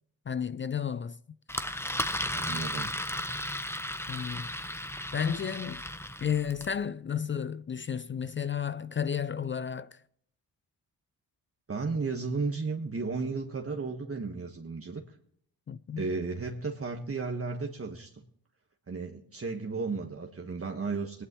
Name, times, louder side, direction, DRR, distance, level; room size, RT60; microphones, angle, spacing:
voice 1, 0.3-1.2 1.6-1.9 4.1-4.5 5.1-5.8 6.2-10.0 15.7-16.1, left 7 dB, 30° left, 0.4 m, -32 dB
Engine, 1.5-6.8, left 1 dB, 5° left, 1.0 m, -35 dB
voice 2, 2.3-3.0 11.7-15.0 16.0-18.2 18.9-21.2, right 4 dB, 35° right, 1.4 m, -34 dB
17.0 x 11.0 x 3.0 m
supercardioid pair, 50°, 41 cm